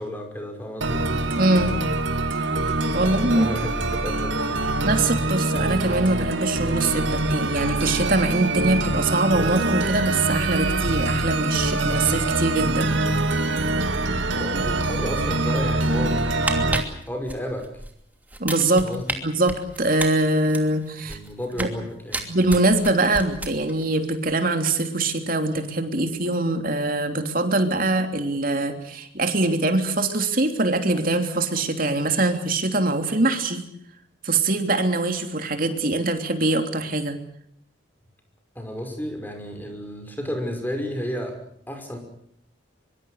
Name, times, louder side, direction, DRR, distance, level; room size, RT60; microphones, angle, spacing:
voice 1, 0.0-1.2 3.0-3.8 4.0-4.7 14.4-16.2 17.1-17.8 18.8-19.1 21.0-22.3 38.6-42.0, equal, 10° left, 4 dB, 5.7 m, -32 dB
sound 1, 0.8-16.8, right 2 dB, 80° right, 2.4 m, -24 dB
voice 2, 1.4-1.8 2.9-3.5 4.8-12.9 18.4-18.9 19.2-21.2 21.6-21.7 22.3-33.6 34.2-37.1, right 2 dB, 45° right, 6 dB, 3.2 m, -23 dB
sound 2, 16.3-17.9 18.3-19.1 19.5-21.8 22.1-23.9 24.1-24.3, right 2 dB, 10° right, 2.8 m, -31 dB
24.0 x 24.0 x 6.5 m, 0.68 s
head